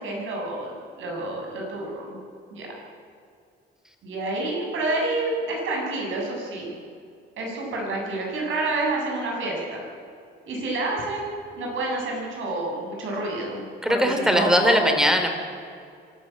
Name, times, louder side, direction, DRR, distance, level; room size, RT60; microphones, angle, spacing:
voice 1, 0.0-2.2 2.5-2.7 4.0-6.8 7.4-9.8 10.5-14.8, right 2 dB, 80° right, -1 dB, 7.2 m, -29 dB
voice 2, 13.8-15.3, equal, 5° right, 5 dB, 3.4 m, -20 dB
24.5 x 13.5 x 9.0 m, 2.4 s
cardioid pair, 90°, 20 cm